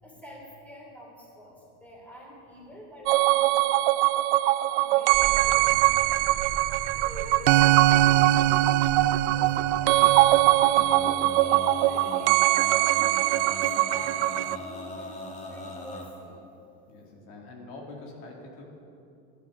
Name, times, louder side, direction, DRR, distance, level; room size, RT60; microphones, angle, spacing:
voice 1, 0.0-3.9 4.7-11.1 11.3-16.5, left 1 dB, 5° left, -2 dB, 3.2 m, -47 dB
sound 1, 3.1-14.6, right 16 dB, 80° right, 0.5 m, -22 dB
sound 2, 5.1-10.4, right 4 dB, 25° right, 2.3 m, -39 dB
Male singing, 10.7-16.1, left 2 dB, 20° left, 1.8 m, -38 dB
voice 2, 16.9-18.6, left 2 dB, 65° left, -1 dB, 2.4 m, -44 dB
11.5 x 11.0 x 6.4 m, 2.6 s
supercardioid pair, 145°, 34 cm